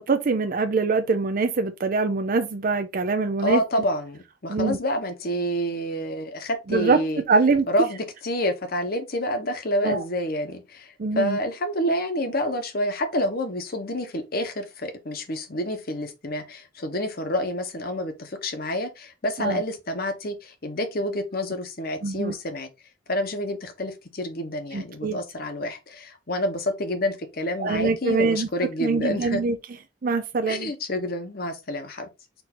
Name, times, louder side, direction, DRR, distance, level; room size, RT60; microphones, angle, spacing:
voice 1, 0.0-3.9 4.5-4.8 6.7-7.0 7.3-7.7 9.8-10.0 11.0-11.4 19.4-19.6 22.0-22.3 24.7-25.2 27.6-28.5 28.8-29.6 30.0-30.7, right 4 dB, 45° right, 0.4 m, -24 dB
voice 2, 3.4-7.2 7.7-22.7 23.1-29.4 30.5-32.1, left 1 dB, 50° left, 1.0 m, -28 dB
4.6 x 2.6 x 4.2 m
head